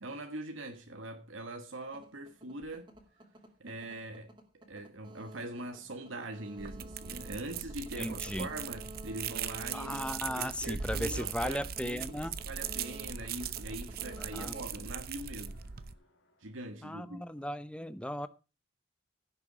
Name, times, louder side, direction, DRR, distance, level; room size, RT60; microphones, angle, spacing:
voice 1, 0.0-2.9 3.6-10.0 10.3-15.6 16.4-17.2, right 1 dB, 85° right, 1.4 m, -42 dB
sound 1, 1.8-15.7, right 2 dB, 25° right, 2.1 m, -51 dB
sound 2, 6.6-15.9, right 7 dB, 50° right, 0.8 m, -40 dB
voice 2, 8.0-8.5 9.7-12.3 14.2-14.5 16.8-18.3, left 1 dB, 5° left, 0.7 m, -36 dB
sound 3, 8.6-16.7, left 1 dB, 80° left, 2.9 m, -67 dB
16.0 x 7.0 x 4.9 m
head